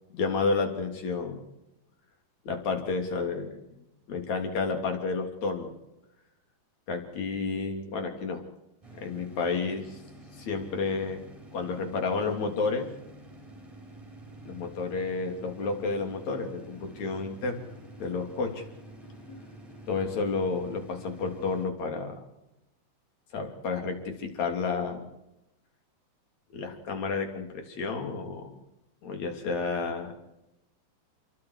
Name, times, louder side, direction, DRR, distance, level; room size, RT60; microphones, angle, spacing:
voice 1, 0.1-1.4 2.5-3.6 4.1-5.7 6.9-8.4 8.9-10.0 10.4-11.2 11.5-12.9 14.4-17.6 18.0-18.6 19.3-19.4 19.9-22.2 23.3-25.1 26.5-28.6 29.0-30.1, left 4 dB, 40° left, 4 dB, 3.9 m, -31 dB
sound 1, 8.8-21.7, right 1 dB, 5° right, 3.6 m, -48 dB
29.5 x 23.0 x 4.8 m, 0.91 s
omnidirectional pair, 5.3 m